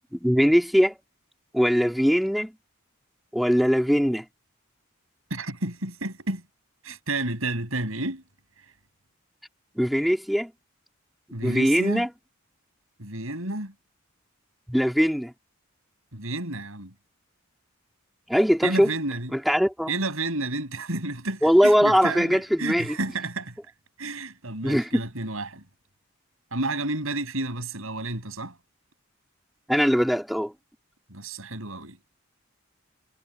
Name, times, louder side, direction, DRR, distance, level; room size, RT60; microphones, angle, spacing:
voice 1, 0.1-0.9 1.5-2.5 3.3-4.2 9.8-10.5 11.4-12.1 14.7-15.3 18.3-18.9 19.3-19.9 21.4-23.0 24.6-25.0 29.7-30.5, equal, ahead, 2.7 m, -21 dB
voice 2, 5.3-6.4 6.8-8.2 11.3-12.1 13.0-13.7 16.1-16.9 18.6-19.3 19.9-23.5 24.0-25.6 26.5-28.5 31.1-32.0, right 2 dB, 75° right, 5.9 m, -31 dB
head